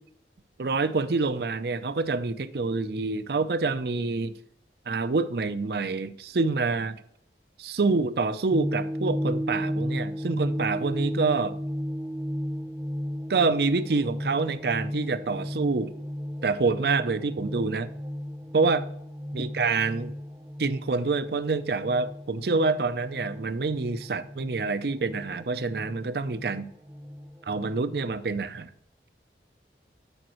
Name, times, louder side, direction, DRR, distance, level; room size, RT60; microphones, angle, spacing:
voice 1, 0.6-4.4 4.9-7.0 7.6-11.6 13.3-15.9 16.4-17.9 18.5-18.8 19.3-20.1 20.6-26.7 27.5-28.7, right 4 dB, 65° right, 0.5 m, -27 dB
sound 1, 8.5-27.9, equal, 15° right, 0.7 m, -34 dB
12.5 x 5.2 x 3.0 m
head